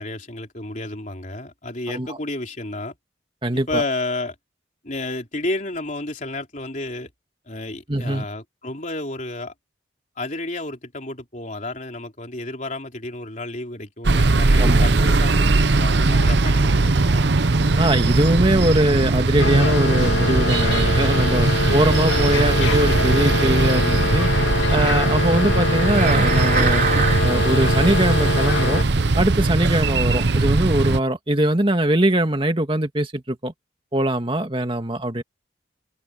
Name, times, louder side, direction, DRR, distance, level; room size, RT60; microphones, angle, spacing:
voice 1, 0.0-3.0 3.5-4.4 4.8-7.1 7.5-9.5 10.2-17.4, left 2 dB, 40° left, 3.6 m, -31 dB
voice 2, 3.4-3.8 7.9-8.3 14.6-15.0 17.8-24.3 24.7-26.8 27.2-28.8 29.2-33.5 33.9-35.2, right 1 dB, 25° right, 2.1 m, -22 dB
sound 1, 14.0-31.0, right 3 dB, 60° right, 0.8 m, -19 dB
sound 2, 19.4-28.8, left 3 dB, 75° left, 2.7 m, -24 dB
sound 3, 23.0-27.5 28.1-28.2, right 5 dB, 45° right, 5.2 m, -28 dB
head